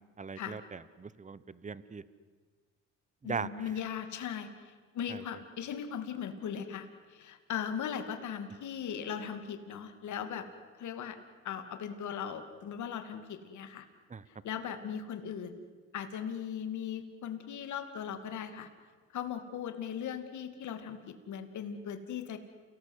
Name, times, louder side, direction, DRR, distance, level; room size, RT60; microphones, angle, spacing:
voice 1, 0.2-2.0 3.2-3.7 5.1-5.2 14.1-14.2, right 5 dB, 25° right, 17 dB, 1.0 m, -39 dB
voice 2, 3.2-10.5 10.8-11.2 11.4-13.9 14.4-15.7 15.9-18.7 19.1-22.4, left 8 dB, 75° left, 8 dB, 2.6 m, -38 dB
29.0 x 18.5 x 8.2 m, 1.5 s
cardioid pair, 90°, 30 cm